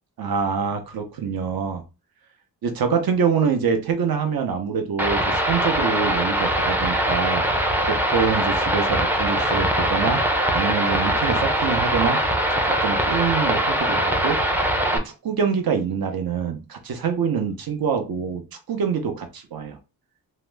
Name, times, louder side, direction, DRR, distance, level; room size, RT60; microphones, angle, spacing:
voice 1, 0.2-1.8 2.6-12.3 12.6-18.4 18.7-19.8, right 6 dB, 60° right, 5 dB, 0.7 m, -25 dB
sound 1, 5.0-15.0, right 1 dB, 5° right, 0.4 m, -22 dB
2.8 x 2.1 x 3.3 m, 0.28 s
wide cardioid pair, 115°, 41 cm